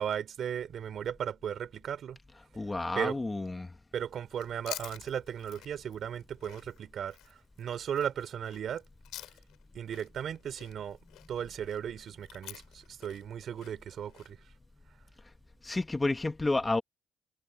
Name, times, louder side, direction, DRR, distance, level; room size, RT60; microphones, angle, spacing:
voice 1, 0.0-2.2 3.0-3.2 3.9-8.8 9.7-11.0 11.3-14.4, right 9 dB, 65° right, 3.7 m, -36 dB
voice 2, 2.6-3.7 15.6-16.8, left 2 dB, 20° left, 1.4 m, -30 dB
Chewing mastication, 4.3-9.6 9.9-14.3, left 14 dB, 85° left, 6.6 m, -48 dB
cardioid pair, 90°, 0 cm